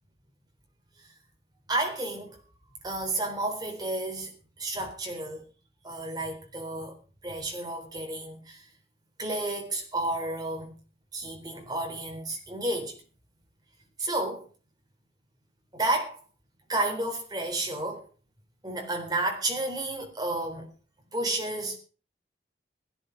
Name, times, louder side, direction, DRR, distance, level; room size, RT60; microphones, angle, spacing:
voice 1, 1.7-2.4 2.8-5.5 5.8-8.7 9.2-10.7 11.1-13.0 14.0-14.5 15.7-16.2 16.7-18.1 18.6-20.7 21.1-21.8, right 2 dB, 20° right, 4.0 m, -31 dB
17.0 x 10.5 x 5.3 m
head